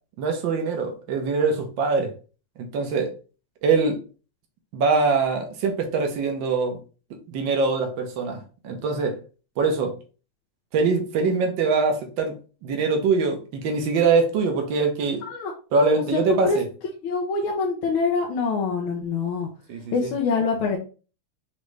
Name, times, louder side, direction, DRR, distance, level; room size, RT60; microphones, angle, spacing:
voice 1, 0.2-2.1 2.6-3.1 3.6-4.0 4.7-6.8 7.3-9.2 9.6-9.9 10.7-12.4 12.6-15.2 15.7-16.7 19.7-20.1, right 4 dB, 70° right, 1.7 m, -23 dB
voice 2, 16.1-16.6 17.0-19.5 19.9-20.8, left 4 dB, 85° left, 1.7 m, -25 dB
5.1 x 3.2 x 3.2 m
omnidirectional pair, 2.2 m